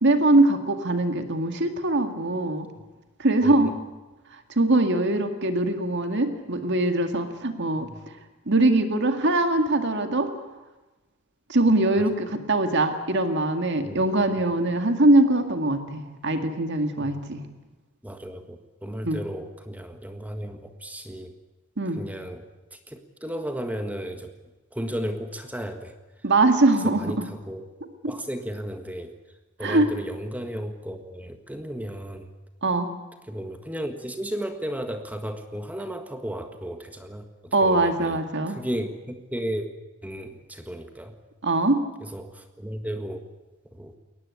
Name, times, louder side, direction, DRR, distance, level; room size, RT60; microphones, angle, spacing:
voice 1, 0.0-2.7 3.2-3.7 4.6-7.9 8.5-10.3 11.5-17.4 19.0-19.2 21.8-22.0 26.2-27.3 29.6-29.9 32.6-32.9 37.5-38.6 41.4-41.8, right 2 dB, 55° right, 7 dB, 2.1 m, -22 dB
voice 2, 3.4-3.7 7.8-8.0 11.9-12.0 13.8-14.0 17.0-17.2 18.0-21.3 21.9-24.3 24.7-25.9 26.8-27.7 28.1-29.1 29.6-32.3 33.3-38.2 38.5-39.7 40.0-41.2 42.0-43.3 43.7-43.9, equal, 5° right, 7 dB, 1.6 m, -34 dB
22.0 x 19.0 x 9.7 m, 1.1 s
head